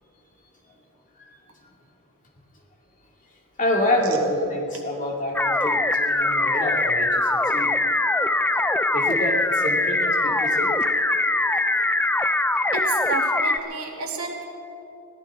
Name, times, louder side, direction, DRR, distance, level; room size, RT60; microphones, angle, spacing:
voice 1, 3.6-7.7 8.9-10.7, left 1 dB, 35° left, -1 dB, 2.3 m, -27 dB
sound 1, 5.4-13.6, left 2 dB, 10° left, 0.4 m, -22 dB
voice 2, 12.7-14.4, right 3 dB, 75° right, 0 dB, 2.3 m, -30 dB
22.0 x 17.0 x 3.6 m, 2.8 s
head